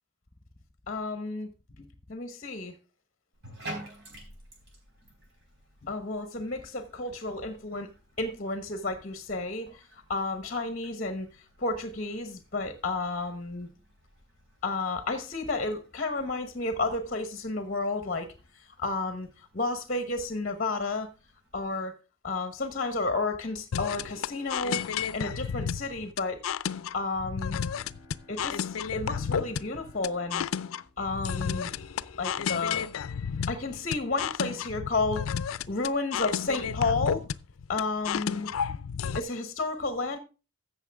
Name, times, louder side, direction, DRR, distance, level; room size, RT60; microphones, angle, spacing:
voice 1, 0.9-1.5 1.8-2.8 5.8-7.9 8.2-9.8 10.1-11.3 11.6-13.7 14.6-18.3 18.8-21.1 21.5-22.0 22.2-24.8 25.1-26.4 26.9-27.6 28.3-30.4 31.0-31.7 32.2-32.9 33.5-35.3 35.7-37.3 37.7-38.5 39.1-40.2, left 3 dB, 40° left, 1.1 m, -31 dB
Bathtub (filling or washing), 3.3-21.7, right 1 dB, 55° right, 4.4 m, -51 dB
sound 1, 23.7-39.2, left 7 dB, 85° left, 0.4 m, -32 dB
sound 2, 27.4-32.1, left 2 dB, 15° right, 4.2 m, -58 dB
14.5 x 6.7 x 3.5 m
head